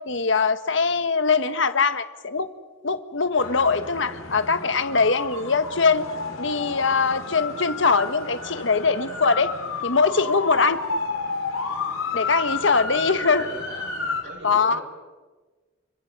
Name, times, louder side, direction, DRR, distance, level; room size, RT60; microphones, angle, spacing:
voice 1, 0.1-2.5 2.8-6.0 6.4-9.5 9.8-10.8 12.1-13.5 14.4-14.8, left 4 dB, 65° left, 11 dB, 1.3 m, -22 dB
sound 1, 3.4-14.2, left 4 dB, 85° left, 3.4 m, -32 dB
voice 2, 12.7-13.9 14.2-14.8, right 1 dB, 65° right, 0 dB, 5.6 m, -40 dB
29.5 x 26.0 x 5.4 m, 1.3 s
head